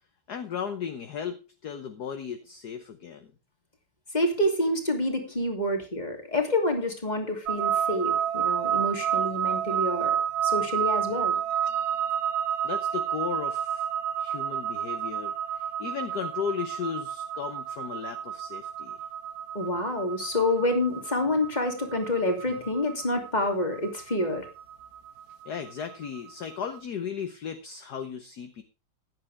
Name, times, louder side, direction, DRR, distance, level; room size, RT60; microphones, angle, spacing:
voice 1, 0.3-3.3 12.6-13.9 14.2-19.0 25.4-28.6, left 7 dB, 55° left, 8 dB, 1.5 m, -35 dB
voice 2, 4.1-10.2 10.4-11.4 19.5-24.5, left 1 dB, 20° left, 4 dB, 2.8 m, -27 dB
sound 1, 7.5-26.5, right 9 dB, 60° right, 1.1 m, -30 dB
15.5 x 11.0 x 3.4 m, 0.29 s
omnidirectional pair, 2.3 m